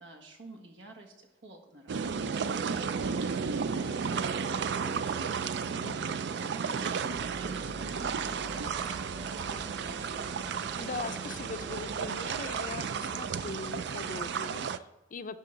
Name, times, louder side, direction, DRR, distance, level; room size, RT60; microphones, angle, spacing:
voice 1, 0.0-2.0 2.6-5.4 6.2-9.6, right 1 dB, 85° right, 2 dB, 1.7 m, -49 dB
sound 1, 1.9-14.8, right 6 dB, 65° right, 0.4 m, -33 dB
voice 2, 5.8-6.2 10.8-15.4, left 4 dB, 45° left, 11 dB, 0.5 m, -41 dB
sound 2, 7.1-14.5, left 1 dB, 5° left, 0.7 m, -48 dB
11.5 x 3.8 x 6.7 m, 1.0 s
head